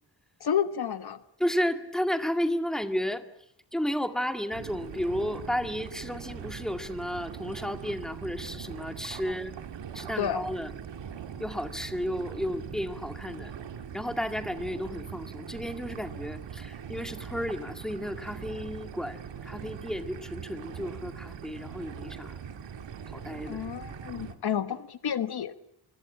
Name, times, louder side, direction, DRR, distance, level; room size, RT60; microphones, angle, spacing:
voice 1, 0.4-1.2 9.2-9.4 10.2-10.4 23.5-25.6, left 8 dB, 60° left, 12 dB, 1.2 m, -30 dB
voice 2, 1.4-3.2 3.7-9.5 9.9-10.7 11.4-13.5 13.9-22.4 23.1-23.6, equal, ahead, 8 dB, 2.1 m, -32 dB
sound 1, 4.5-24.3, right 7 dB, 85° right, 2.5 m, -41 dB
25.0 x 24.5 x 8.7 m, 0.72 s
wide cardioid pair, 140°, 43 cm